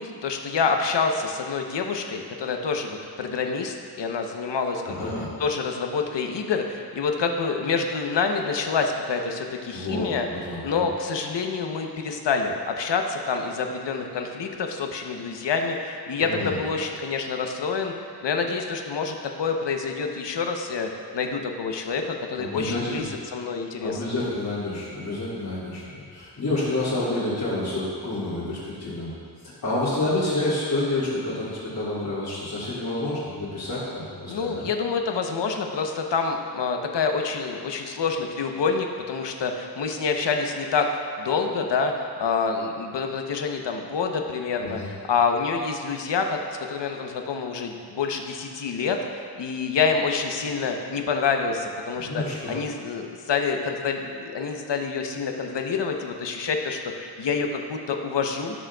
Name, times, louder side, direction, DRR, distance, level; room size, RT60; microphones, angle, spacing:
voice 1, 0.0-5.1 5.4-10.3 10.6-17.9 18.2-24.0 34.3-46.4 46.7-58.7, left 5 dB, 75° left, 3 dB, 0.9 m, -27 dB
voice 2, 4.9-5.3 9.7-10.9 16.2-16.5 22.4-23.1 23.8-29.1 29.6-34.6 44.6-44.9 51.9-52.6, left 2 dB, 60° left, -12 dB, 2.3 m, -29 dB
16.5 x 6.3 x 2.3 m, 2.2 s
wide cardioid pair, 160°, 42 cm